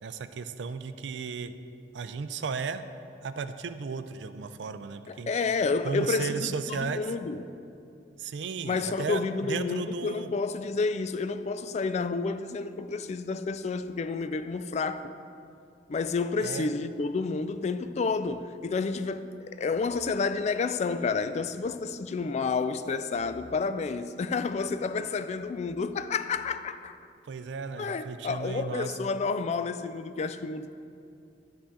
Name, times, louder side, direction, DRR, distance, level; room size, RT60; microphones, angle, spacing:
voice 1, 0.0-1.5 1.9-2.8 3.2-5.3 5.8-7.1 8.2-10.3 16.4-16.7 27.2-28.9, right 5 dB, 90° right, 0.4 m, -35 dB
voice 2, 5.1-6.4 6.7-7.4 8.6-15.1 15.9-26.9 27.8-30.7, left 4 dB, 40° left, 0.3 m, -30 dB
9.9 x 3.8 x 7.1 m
head